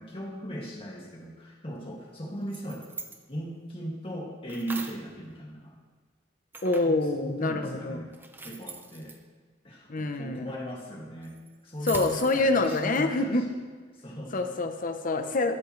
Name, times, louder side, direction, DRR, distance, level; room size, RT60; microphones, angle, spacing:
voice 1, 0.0-2.8 3.3-5.8 6.8-8.1 8.4-9.1 9.6-13.6 13.9-14.5, equal, 30° left, -3 dB, 2.2 m, -38 dB
sound 1, 2.3-3.2 4.5-5.1 6.5-7.0 8.1-9.2 11.2-13.0, right 3 dB, 10° right, 0.8 m, -41 dB
voice 2, 6.6-8.0 9.9-10.5 11.8-13.4 14.3-15.6, left 2 dB, 45° left, 7 dB, 0.8 m, -26 dB
13.0 x 13.0 x 3.2 m, 1.5 s
head